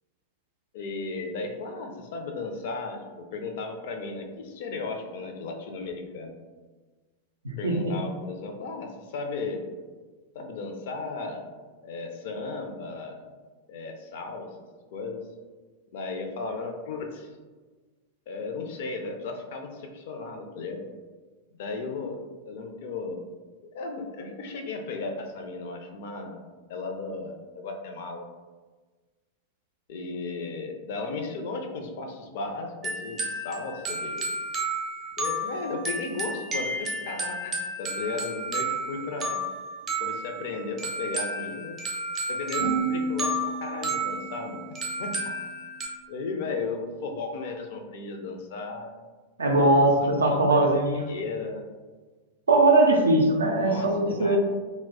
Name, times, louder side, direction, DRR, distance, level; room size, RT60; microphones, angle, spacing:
voice 1, 0.7-6.4 7.6-9.6 10.3-11.4 11.8-13.2 13.7-14.5 14.9-15.3 15.9-17.3 18.3-20.8 21.6-23.2 23.7-26.4 26.7-28.3 29.9-34.3 35.2-39.5 40.0-41.8 42.3-44.6 45.0-45.1 46.1-48.9 49.5-50.7 51.0-51.7 53.6-54.4, left 3 dB, 55° left, 3 dB, 0.4 m, -35 dB
voice 2, 7.4-7.9 49.4-51.0 52.5-54.4, right 2 dB, 75° right, 2 dB, 0.4 m, -21 dB
sound 1, 32.8-45.9, right 2 dB, 25° right, 0.5 m, -32 dB
sound 2, 42.6-45.6, right 2 dB, 90° left, 0.9 m, -33 dB
2.2 x 2.0 x 3.5 m, 1.3 s
figure-of-eight pair, 90°, 0 cm